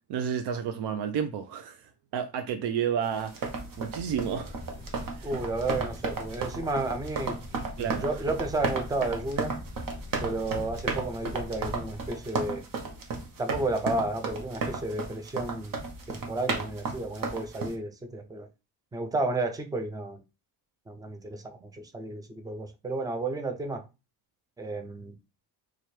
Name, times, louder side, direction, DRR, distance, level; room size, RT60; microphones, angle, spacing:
voice 1, 0.1-4.6 5.2-5.4 7.8-8.2, right 8 dB, 80° right, 0.6 m, -31 dB
sound 1, 3.2-17.7, right 4 dB, 55° right, 0.9 m, -34 dB
sound 2, 4.0-12.1, left 1 dB, 10° left, 1.2 m, -44 dB
voice 2, 5.2-7.4 7.8-9.5 10.2-12.7 13.4-15.8 16.1-18.5 18.9-20.2 20.9-23.9 24.6-25.1, right 2 dB, 10° right, 0.4 m, -32 dB
4.3 x 2.4 x 3.2 m
cardioid pair, 160°, 40 cm